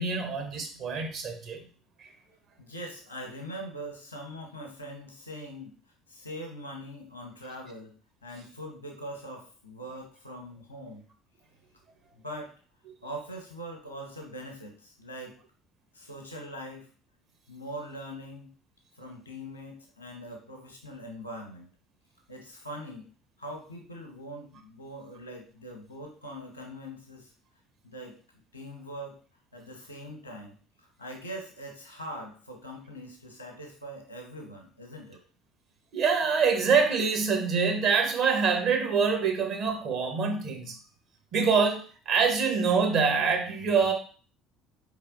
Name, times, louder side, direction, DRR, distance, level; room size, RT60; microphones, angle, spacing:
voice 1, 0.0-1.6 35.9-40.7 41.3-43.9, right 5 dB, 55° right, 4 dB, 0.9 m, -25 dB
voice 2, 2.6-5.7 6.1-7.9 8.2-11.1 12.2-12.5 13.0-15.3 15.9-16.9 17.5-18.5 19.0-21.7 22.3-23.1 23.4-27.3 27.8-28.2 28.5-29.2 29.5-35.2, equal, 90° left, 3 dB, 0.9 m, -42 dB
4.5 x 3.3 x 2.5 m, 0.39 s
figure-of-eight pair, 60°, 0 cm